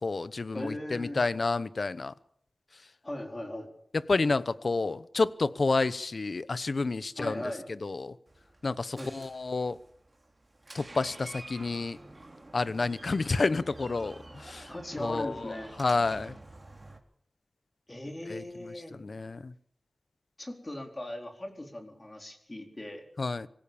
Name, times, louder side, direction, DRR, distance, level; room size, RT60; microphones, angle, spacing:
voice 1, 0.0-2.1 4.1-7.4 7.7-8.1 8.6-9.8 10.7-12.0 12.5-14.7 15.0-16.4 18.3-19.5 23.2-23.5, left 3 dB, 55° left, 16 dB, 0.9 m, -30 dB
voice 2, 0.5-1.2 3.0-3.7 7.2-7.7 9.0-9.1 14.7-15.7 17.9-19.0 20.4-23.0, left 1 dB, 25° left, 3 dB, 4.3 m, -38 dB
Door, 8.3-17.0, right 2 dB, 25° right, 3.8 m, -49 dB
25.0 x 15.5 x 7.3 m, 0.65 s
wide cardioid pair, 100°, 0 cm